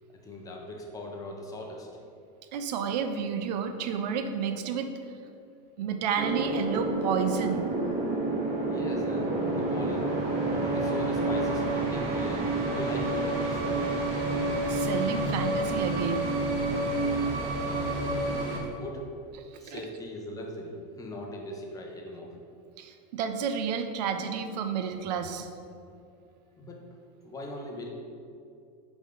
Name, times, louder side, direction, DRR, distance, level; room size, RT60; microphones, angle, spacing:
voice 1, 0.1-1.9 8.7-10.2 10.6-13.6 17.0-19.2 19.6-22.4 26.6-26.8 27.2-27.9, left 1 dB, 15° left, 0 dB, 0.7 m, -40 dB
voice 2, 2.5-4.9 5.8-7.6 14.5-16.3 19.5-19.8 22.8-25.5, right 6 dB, 90° right, 8 dB, 0.6 m, -31 dB
sound 1, 6.2-18.6, right 2 dB, 55° right, 1.3 m, -29 dB
8.8 x 3.5 x 3.8 m, 2.4 s
supercardioid pair, 155°, 21 cm